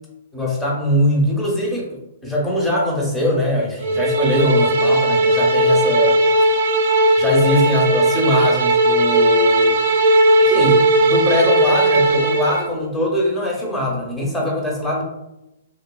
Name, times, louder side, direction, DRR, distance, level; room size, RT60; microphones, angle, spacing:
voice 1, 0.3-2.0 2.2-6.2 7.2-9.8 10.4-15.0, left 1 dB, 5° left, -3 dB, 0.7 m, -21 dB
sound 1, 3.8-12.7, right 1 dB, 60° right, 0.4 m, -16 dB
3.0 x 2.3 x 2.3 m, 0.90 s
hypercardioid pair, 135°, 0 cm